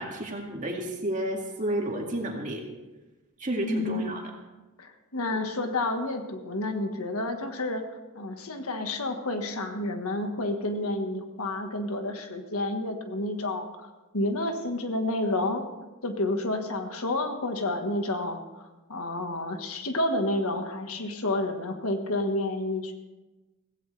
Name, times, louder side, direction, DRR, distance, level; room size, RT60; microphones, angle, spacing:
voice 1, 0.0-2.6 3.4-4.2, right 1 dB, 35° right, 0 dB, 2.2 m, -31 dB
voice 2, 3.6-4.1 4.8-15.7 16.0-22.9, left 2 dB, 75° left, 6 dB, 1.5 m, -30 dB
16.5 x 16.0 x 3.3 m, 1.1 s
head